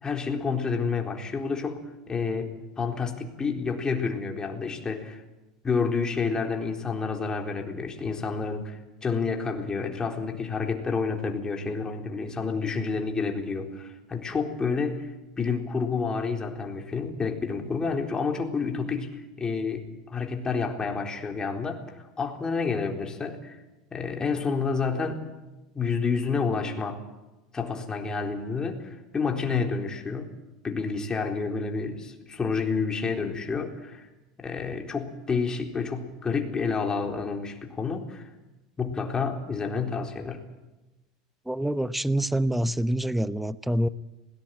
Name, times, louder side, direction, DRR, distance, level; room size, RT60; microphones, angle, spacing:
voice 1, 0.0-5.2 5.6-15.1 15.4-23.6 23.9-25.3 25.7-27.0 27.5-30.3 30.6-34.1 34.4-38.3 38.8-40.5, left 5 dB, 25° left, 3 dB, 4.0 m, -29 dB
voice 2, 41.5-43.9, right 1 dB, 5° right, 14 dB, 0.9 m, -26 dB
20.0 x 18.5 x 8.9 m, 1.1 s
hypercardioid pair, 90°, 3 cm